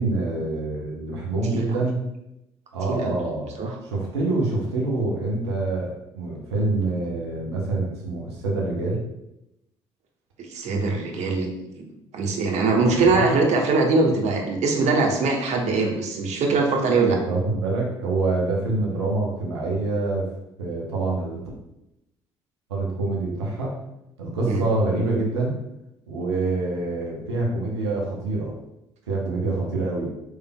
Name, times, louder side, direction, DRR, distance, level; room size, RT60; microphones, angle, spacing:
voice 1, 0.0-2.0 2.7-3.6 3.8-9.0 12.9-13.3 17.1-20.3 20.6-21.4 22.7-23.7 24.2-25.5 26.1-28.5 29.1-30.1, right 2 dB, 90° right, -3 dB, 0.9 m, -26 dB
voice 2, 10.4-11.5 11.8-17.2 24.5-24.6, right 3 dB, 55° right, 2 dB, 1.0 m, -22 dB
6.1 x 3.3 x 2.2 m, 0.85 s
hypercardioid pair, 50°, 14 cm